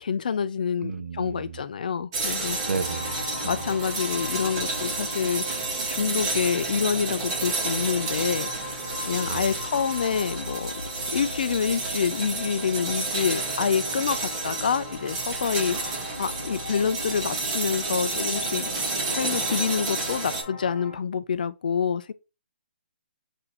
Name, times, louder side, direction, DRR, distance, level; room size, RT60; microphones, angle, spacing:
voice 1, 0.0-2.6 3.4-5.5 5.9-8.5 9.1-10.7 11.1-15.8 16.2-18.7 19.1-22.1, left 6 dB, 45° left, 0.4 m, -27 dB
voice 2, 0.8-1.6 2.6-3.8 9.3-9.5, right 5 dB, 85° right, 0.4 m, -33 dB
sound 1, 2.1-20.4, right 3 dB, 20° right, 0.9 m, -30 dB
sound 2, 2.2-21.0, left 1 dB, 15° left, 0.8 m, -40 dB
4.1 x 2.7 x 4.1 m
hypercardioid pair, 175°, 6 cm